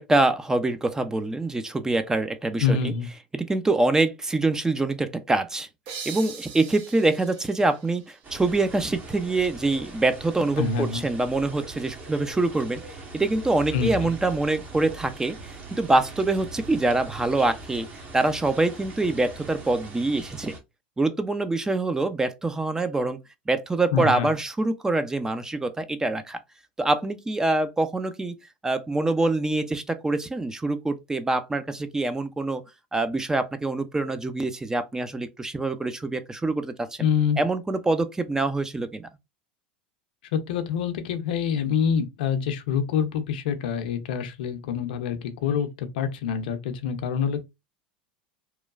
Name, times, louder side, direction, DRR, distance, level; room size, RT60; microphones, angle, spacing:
voice 1, 0.0-2.9 3.3-5.7 6.1-17.9 18.1-20.5 21.0-23.2 23.5-26.4 26.8-28.3 28.6-32.6 32.9-37.1 37.4-39.1, right 2 dB, 10° right, 0.4 m, -25 dB
voice 2, 2.6-3.1 10.6-11.0 13.7-14.1 23.9-24.3 37.0-37.4 40.3-47.5, left 7 dB, 75° left, 0.5 m, -26 dB
sound 1, 5.9-9.3, right 7 dB, 60° right, 0.8 m, -42 dB
sound 2, 8.2-20.6, right 2 dB, 35° right, 1.0 m, -41 dB
3.0 x 2.2 x 2.4 m
hypercardioid pair, 90°, 5 cm